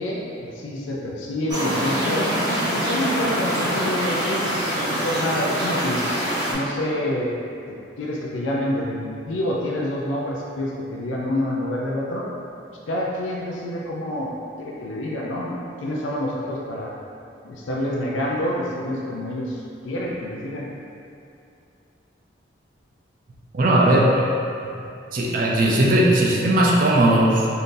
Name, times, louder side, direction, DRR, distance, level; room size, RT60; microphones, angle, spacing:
voice 1, 0.0-2.3 2.7-6.0 6.5-7.4 8.0-12.2 12.9-14.3 14.6-16.9 17.4-20.7, left 1 dB, 80° left, -3 dB, 0.4 m, -27 dB
sound 1, 1.5-6.5, equal, 20° right, 0.7 m, -24 dB
voice 2, 23.5-24.3 24.6-24.7 25.1-27.5, right 1 dB, 45° right, -3 dB, 0.4 m, -18 dB
2.6 x 2.6 x 3.6 m, 2.6 s
head